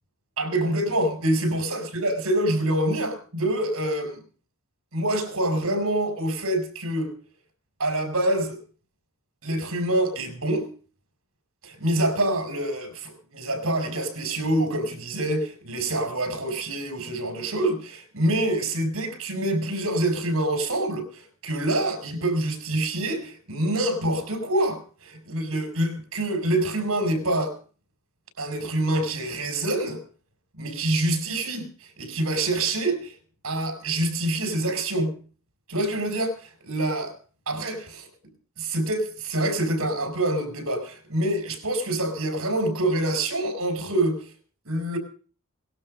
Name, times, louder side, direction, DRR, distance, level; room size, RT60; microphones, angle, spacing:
voice 1, 0.4-4.2 4.9-7.1 7.8-8.6 9.4-10.7 11.6-27.5 28.4-30.0 30.6-31.7 32.0-33.1 33.4-35.1 35.7-36.4 36.6-37.1 37.5-38.1 38.6-44.2 44.6-45.0, right 1 dB, 75° right, 4.8 m, -26 dB
18.5 x 12.0 x 5.1 m
head